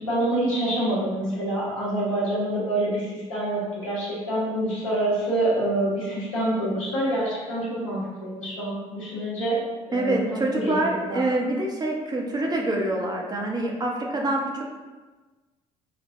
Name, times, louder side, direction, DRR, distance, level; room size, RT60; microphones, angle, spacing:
voice 1, 0.0-9.6 9.9-11.2, right 1 dB, 80° left, -6 dB, 0.9 m, -26 dB
voice 2, 9.9-14.6, right 2 dB, 25° right, 0 dB, 0.6 m, -26 dB
4.1 x 2.1 x 2.6 m, 1.3 s
figure-of-eight pair, 50°, 16 cm